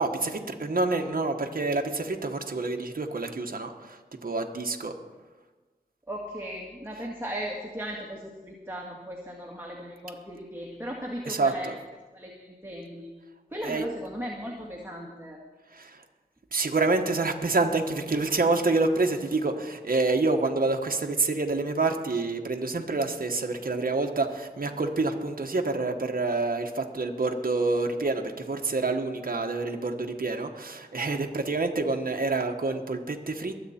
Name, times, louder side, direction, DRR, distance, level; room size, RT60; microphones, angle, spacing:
voice 1, 0.0-4.9 11.3-11.7 13.6-13.9 15.7-16.0 16.5-33.5, right 3 dB, 60° right, 3 dB, 1.2 m, -27 dB
voice 2, 6.1-11.7 12.1-13.1 13.5-15.4, equal, 15° right, -2 dB, 2.0 m, -37 dB
23.0 x 8.2 x 4.3 m, 1.3 s
cardioid pair, 45°, 16 cm